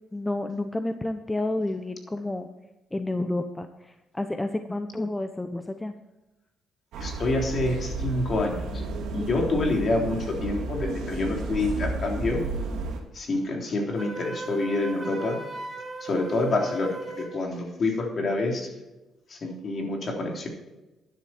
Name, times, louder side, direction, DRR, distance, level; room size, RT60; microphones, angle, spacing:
voice 1, 0.1-2.5 2.9-5.9 9.2-9.3 9.6-9.7, left 2 dB, 15° left, 8 dB, 0.7 m, -30 dB
sound 1, 6.9-13.0, right 3 dB, 85° right, 2.6 m, -32 dB
voice 2, 7.0-8.8 9.1-12.4 13.1-15.4 16.0-18.7 19.3-20.5, left 2 dB, 50° left, 1 dB, 3.4 m, -27 dB
Wind instrument woodwind instrument, 14.0-17.4, right 2 dB, 25° right, 3.1 m, -37 dB
12.0 x 10.5 x 4.5 m, 1.0 s
cardioid pair, 90°, 0 cm